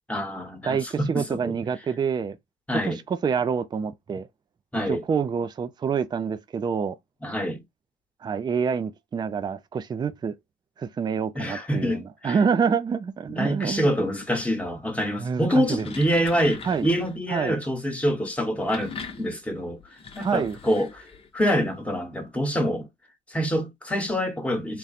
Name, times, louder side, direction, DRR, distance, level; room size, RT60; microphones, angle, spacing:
voice 1, 0.1-1.5 2.7-3.0 4.7-5.0 7.2-7.6 11.3-12.4 13.3-19.8 20.1-21.1 21.3-22.9 23.3-24.8, equal, 10° left, 1.2 m, -26 dB
voice 2, 0.7-2.4 2.8-4.3 4.9-7.0 8.2-10.4 10.8-13.9 15.2-15.9 16.7-16.9 17.3-17.6 20.2-20.6, right 6 dB, 25° right, 0.4 m, -27 dB
sound 1, 15.5-17.2 18.4-21.4, left 5 dB, 35° left, 0.9 m, -41 dB
3.8 x 2.2 x 4.2 m
cardioid pair, 110°, 17 cm